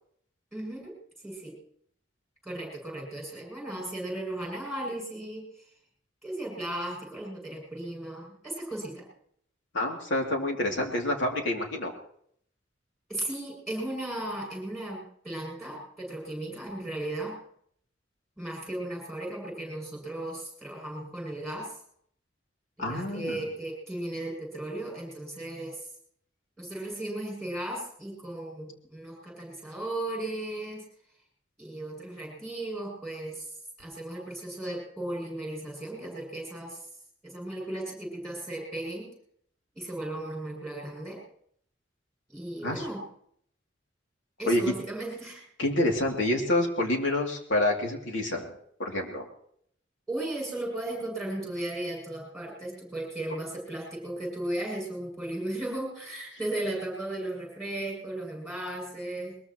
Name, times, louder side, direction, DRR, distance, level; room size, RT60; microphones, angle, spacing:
voice 1, 0.5-1.6 2.4-5.4 6.2-9.1 13.1-17.4 18.4-21.8 22.8-25.8 26.6-30.9 31.6-33.5 33.8-36.8 37.2-39.1 39.7-41.2 42.3-43.1 44.4-45.4 50.1-59.4, right 1 dB, ahead, -3 dB, 7.2 m, -36 dB
voice 2, 9.7-11.9 22.8-23.4 42.6-42.9 44.5-44.6 45.6-48.5 48.8-49.2, left 1 dB, 80° left, 1 dB, 2.9 m, -27 dB
21.5 x 21.0 x 3.1 m, 0.67 s
head